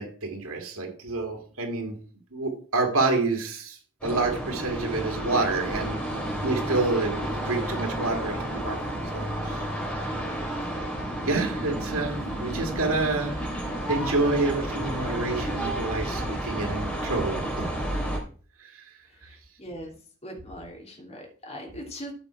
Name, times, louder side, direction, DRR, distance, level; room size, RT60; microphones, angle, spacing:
voice 1, 0.0-1.9 2.3-6.0 6.4-8.8 9.1-9.7 11.3-13.4 13.9-17.6 18.6-18.8, right 3 dB, 75° right, 1 dB, 2.2 m, -28 dB
sound 1, 4.0-18.2, right 1 dB, 5° left, 2.8 m, -31 dB
voice 2, 19.0-20.0 20.2-22.1, equal, 30° left, 0 dB, 2.8 m, -41 dB
13.0 x 5.0 x 4.4 m, 0.42 s
head